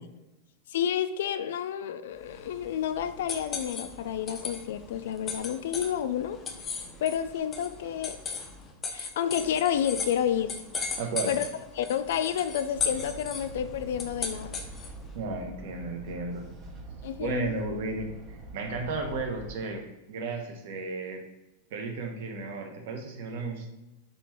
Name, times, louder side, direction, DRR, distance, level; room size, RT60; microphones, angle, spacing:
voice 1, 0.7-6.4 7.0-8.2 8.9-11.0 11.3-11.5 11.8-14.6 17.0-17.5, left 9 dB, 75° left, 12 dB, 0.3 m, -30 dB
sound 1, 2.2-15.1, left 5 dB, 20° left, 0.5 m, -37 dB
voice 2, 11.0-11.3 15.1-16.5 17.2-21.2 21.7-23.7, right 3 dB, 65° right, 4 dB, 0.9 m, -34 dB
sound 2, 12.7-19.6, right 2 dB, 30° right, 0.8 m, -44 dB
4.0 x 3.8 x 3.0 m, 0.99 s
supercardioid pair, 155°, 0 cm